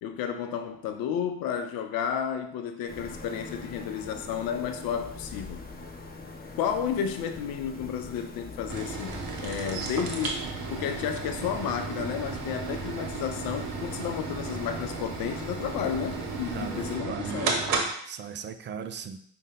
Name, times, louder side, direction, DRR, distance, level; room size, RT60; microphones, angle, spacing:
voice 1, 0.0-5.6 6.6-17.7, left 8 dB, 55° left, 7 dB, 0.6 m, -32 dB
sound 1, 2.9-17.0, left 3 dB, 20° left, 0.7 m, -43 dB
sound 2, 8.7-17.9, right 4 dB, 60° right, 0.9 m, -34 dB
voice 2, 16.5-17.4 18.1-19.2, right 7 dB, 30° right, 9 dB, 0.4 m, -38 dB
5.0 x 2.2 x 3.9 m, 0.66 s
figure-of-eight pair, 45°, 41 cm